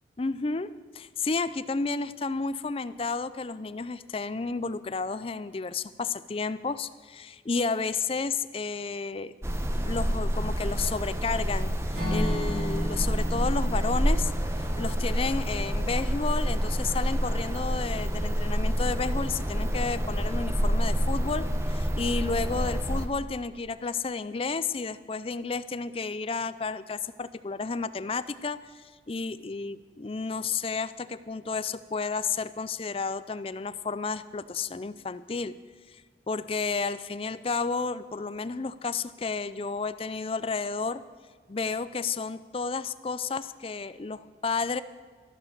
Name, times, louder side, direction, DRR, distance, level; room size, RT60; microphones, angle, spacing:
voice 1, 0.2-9.3 9.7-14.3 14.6-35.5 35.9-36.0 36.3-41.0 41.5-44.8, left 4 dB, 30° left, 15 dB, 0.4 m, -32 dB
sound 1, 9.4-23.1, equal, 15° right, 1.0 m, -28 dB
Acoustic guitar / Strum, 11.9-16.0, left 1 dB, 55° right, 4.3 m, -35 dB
13.5 x 11.5 x 7.3 m, 1.5 s
head